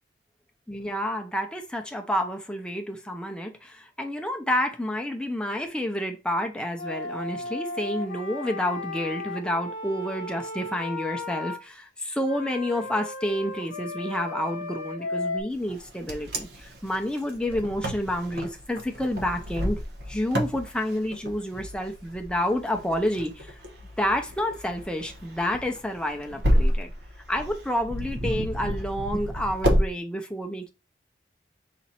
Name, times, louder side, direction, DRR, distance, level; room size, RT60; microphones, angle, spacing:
voice 1, 0.7-19.8 20.1-23.5 24.0-26.9 27.3-30.7, left 1 dB, 5° left, 0.6 m, -29 dB
Wind instrument woodwind instrument, 6.7-11.6 12.2-15.4, left 3 dB, 45° left, 0.9 m, -35 dB
Wind, 15.7-29.9, equal, 65° right, 0.9 m, -30 dB
4.1 x 2.6 x 4.2 m
head